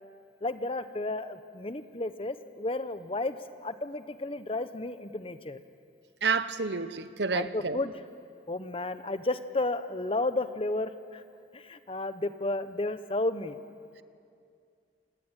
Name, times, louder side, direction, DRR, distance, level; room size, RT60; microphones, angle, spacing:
voice 1, 0.4-5.6 7.3-8.0 8.5-11.2 11.5-13.6, left 2 dB, 30° left, 0.9 m, -32 dB
voice 2, 6.2-7.8, right 4 dB, 65° right, 1.0 m, -29 dB
27.0 x 19.5 x 9.1 m
head